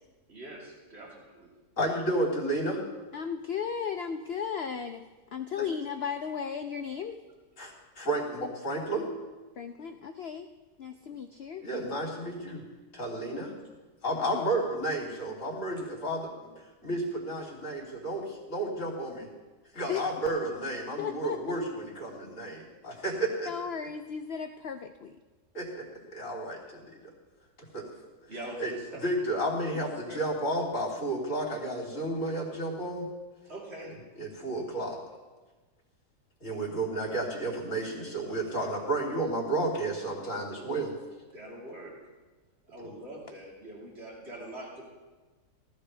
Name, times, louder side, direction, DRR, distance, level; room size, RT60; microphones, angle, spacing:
voice 1, 0.3-1.5 28.3-29.0 29.7-30.2 33.5-33.9 41.3-41.9 42.7-44.8, right 1 dB, 40° right, -6 dB, 3.8 m, -43 dB
voice 2, 1.8-2.8 5.6-5.7 7.6-9.1 11.6-12.6 12.9-13.5 14.0-19.3 19.7-23.5 25.5-25.9 26.1-27.0 27.7-27.8 28.6-28.7 29.0-33.1 34.2-35.0 36.4-40.9 42.8-42.9, right 1 dB, 45° left, -4 dB, 3.7 m, -32 dB
voice 3, 3.1-5.0 5.3-7.2 9.6-10.5 10.8-11.7 14.3-14.4 19.9-20.0 21.0-21.4 23.5-25.2, left 7 dB, 80° left, 7 dB, 0.5 m, -35 dB
18.5 x 14.0 x 3.4 m, 1.3 s
omnidirectional pair, 1.8 m